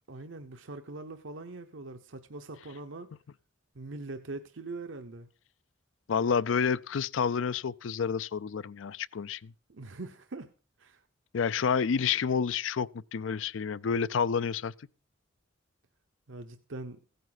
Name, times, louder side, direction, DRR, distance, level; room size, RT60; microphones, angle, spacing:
voice 1, 0.1-3.1 3.7-5.3 9.7-10.5 10.8-11.0 16.3-17.0, right 2 dB, 85° right, 0.9 m, -42 dB
voice 2, 6.1-9.5 11.3-14.7, left 6 dB, 85° left, 0.5 m, -29 dB
16.0 x 9.2 x 4.0 m
head